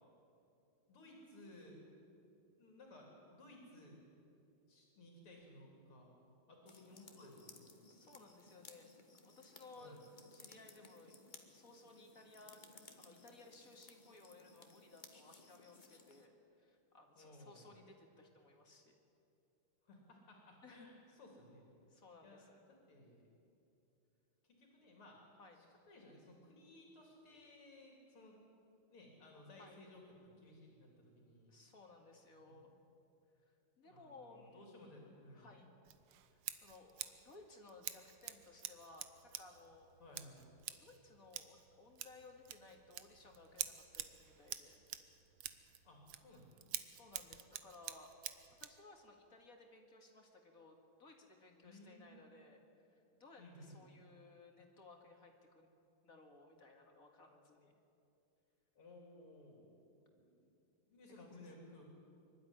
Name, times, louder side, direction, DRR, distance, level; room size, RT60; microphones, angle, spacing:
voice 1, 0.9-1.8 2.6-4.0 4.7-6.1 6.5-7.7 9.8-10.0 17.1-17.7 19.8-21.7 22.2-23.2 24.4-25.3 25.6-28.4 28.9-31.5 32.5-32.6 33.8-35.6 40.0-40.5 45.8-46.7 51.6-52.2 53.4-53.8 58.7-60.5 60.9-61.9, left 1 dB, 85° left, 0 dB, 4.2 m, -59 dB
Fire crackling, 6.7-16.3, left 3 dB, 25° left, 1.3 m, -61 dB
voice 2, 7.9-8.9 9.2-10.0 10.3-16.3 16.6-19.0 20.6-20.9 21.9-22.6 25.4-25.6 29.6-29.8 31.5-32.7 33.5-35.7 36.2-39.1 39.4-39.9 40.7-44.8 46.8-48.1 48.6-52.6 52.9-55.7 56.0-57.7 61.2-61.5, left 3 dB, 40° left, 3 dB, 2.3 m, -60 dB
Scissors, 35.8-48.8, right 11 dB, 80° right, 1.7 m, -49 dB
24.0 x 12.5 x 9.9 m, 2.7 s
omnidirectional pair, 2.4 m